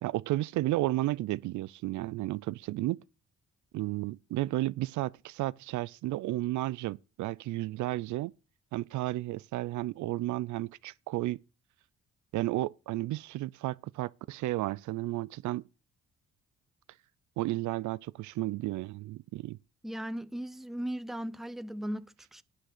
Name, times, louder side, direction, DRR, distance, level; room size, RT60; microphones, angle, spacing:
voice 1, 0.0-3.0 3.7-8.3 8.7-11.4 12.3-15.6 17.4-19.6, right 17 dB, 75° right, 0.4 m, -33 dB
voice 2, 19.8-22.4, equal, ahead, 0.6 m, -37 dB
9.7 x 6.3 x 6.6 m
cardioid pair, 90°, 30 cm